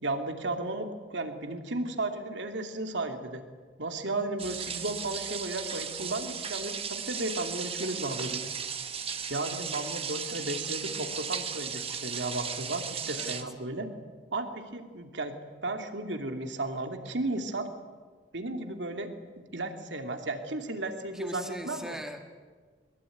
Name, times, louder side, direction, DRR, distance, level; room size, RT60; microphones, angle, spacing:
voice 1, 0.0-3.4 3.8-8.5 9.3-13.9 14.3-15.3 15.6-17.7 18.3-19.1 19.5-22.0, right 2 dB, 75° right, 5 dB, 2.7 m, -34 dB
sound 1, 4.4-13.4, right 7 dB, 30° right, 1.6 m, -36 dB
voice 2, 21.1-22.2, equal, 5° right, 4 dB, 1.9 m, -40 dB
22.5 x 22.0 x 9.3 m, 1.5 s
head